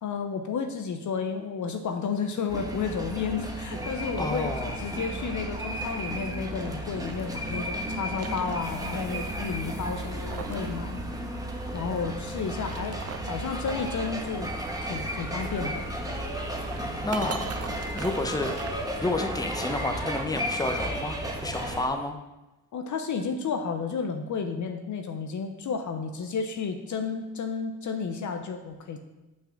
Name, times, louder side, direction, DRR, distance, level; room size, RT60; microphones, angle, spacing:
voice 1, 0.0-11.0 11.7-13.0 13.2-14.5 14.8-15.9 22.7-29.0, left 5 dB, 50° left, 6 dB, 0.9 m, -32 dB
sound 1, 2.5-21.9, right 1 dB, 10° right, 1.2 m, -33 dB
voice 2, 4.2-4.8 17.0-17.5 17.9-18.6 19.0-22.2, left 2 dB, 10° left, 5 dB, 1.0 m, -30 dB
sound 2, 5.7-7.3 7.8-9.0 9.3-9.4 9.9-10.7 11.0-11.1 12.3-13.4 15.3-19.4, right 6 dB, 40° right, 0.8 m, -43 dB
6.0 x 4.8 x 5.9 m, 1.0 s
supercardioid pair, 60°, 37 cm